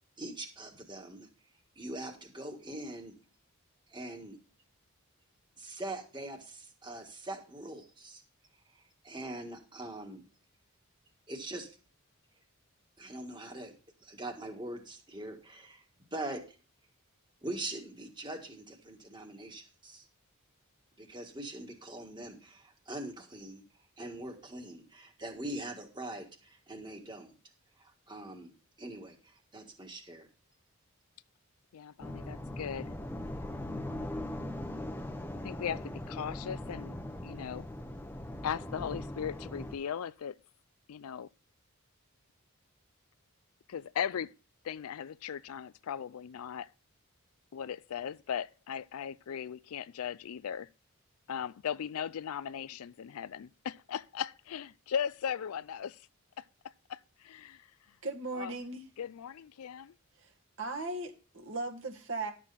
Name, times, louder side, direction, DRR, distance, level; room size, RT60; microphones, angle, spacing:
voice 1, 0.2-1.3 1.8-3.1 3.9-4.4 5.6-8.2 8.7-10.2 11.3-11.7 13.0-13.7 14.0-15.8 16.1-16.6 17.4-20.1 21.0-23.6 24.0-27.3 27.8-28.5 28.8-30.3, right 1 dB, 20° right, 1.7 m, -42 dB
voice 2, 31.7-32.9 35.4-37.0 37.2-37.7 38.4-40.4 40.9-41.3 43.7-44.3 44.6-46.7 47.5-50.7 51.3-56.0 56.4-56.5 56.9-57.6 58.3-58.5 59.0-59.9, left 8 dB, 80° left, 0.4 m, -38 dB
sound 1, 32.0-39.7, left 1 dB, 10° left, 0.8 m, -40 dB
voice 3, 58.0-58.9 60.6-62.3, right 2 dB, 60° right, 1.8 m, -37 dB
11.5 x 7.4 x 4.1 m
head